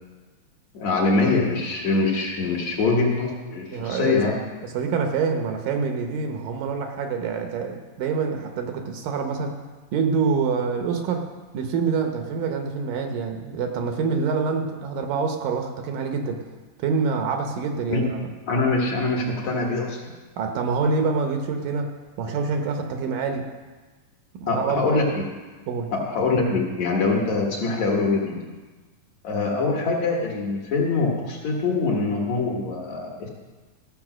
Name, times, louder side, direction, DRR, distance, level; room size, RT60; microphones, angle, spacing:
voice 1, 0.7-4.4 17.9-18.0 18.5-20.0 24.5-25.3 25.9-28.4 29.2-33.3, left 3 dB, 60° left, -2 dB, 2.3 m, -23 dB
voice 2, 3.7-4.3 4.6-9.6 9.9-11.2 11.5-16.4 16.8-18.3 20.4-21.9 22.2-23.5 24.3-24.8 25.7-25.9, right 5 dB, 75° right, 4 dB, 2.4 m, -26 dB
14.0 x 7.0 x 6.1 m, 1.3 s
omnidirectional pair, 4.2 m